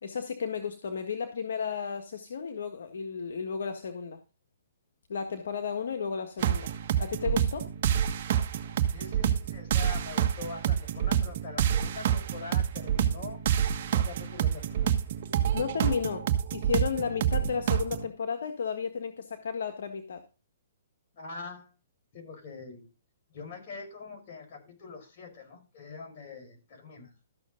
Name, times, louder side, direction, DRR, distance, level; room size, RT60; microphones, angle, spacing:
voice 1, 0.0-4.2 5.1-6.7 7.0-7.7 15.5-20.2, left 6 dB, 70° left, 5 dB, 1.5 m, -33 dB
sound 1, 6.4-18.1, right 10 dB, 50° right, 1.5 m, -27 dB
voice 2, 8.9-13.4 13.8-14.9 21.1-21.7 22.1-22.8 23.3-27.1, left 4 dB, 45° left, 2 dB, 5.6 m, -43 dB
13.5 x 6.6 x 3.8 m, 0.33 s
hypercardioid pair, 145°, 0 cm